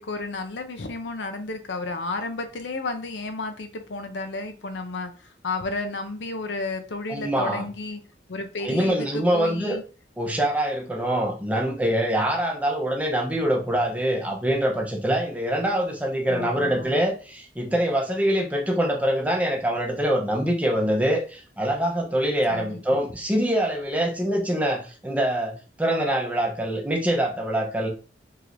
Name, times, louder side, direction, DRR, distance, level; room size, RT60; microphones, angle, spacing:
voice 1, 0.0-8.0 8.3-9.8 16.3-17.0 22.5-23.0, left 3 dB, 90° left, 7 dB, 0.7 m, -32 dB
voice 2, 7.1-7.7 8.6-9.8 10.2-27.9, right 1 dB, 10° right, 1 dB, 0.7 m, -24 dB
4.7 x 3.1 x 2.5 m, 0.36 s
head